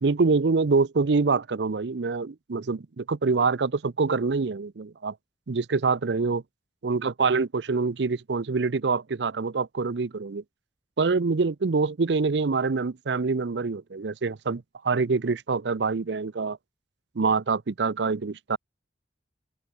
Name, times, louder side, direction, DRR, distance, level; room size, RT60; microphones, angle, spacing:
voice 1, 0.0-5.1 5.5-6.4 6.8-10.4 11.0-16.6 17.2-18.6, right 4 dB, 70° right, 0.6 m, -25 dB
open air
head